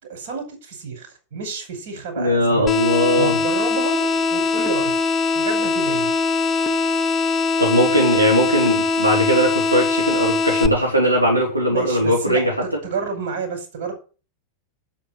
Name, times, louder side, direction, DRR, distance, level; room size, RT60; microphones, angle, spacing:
voice 1, 0.0-2.7 3.2-5.0 5.3-6.1 11.7-13.9, right 5 dB, 55° right, 4 dB, 5.7 m, -30 dB
voice 2, 2.2-3.4 7.6-12.5, equal, 90° right, -1 dB, 2.6 m, -19 dB
sound 1, 2.7-10.7, left 4 dB, 20° left, 1.1 m, -21 dB
8.7 x 8.4 x 7.6 m, 0.35 s
figure-of-eight pair, 90°, 0 cm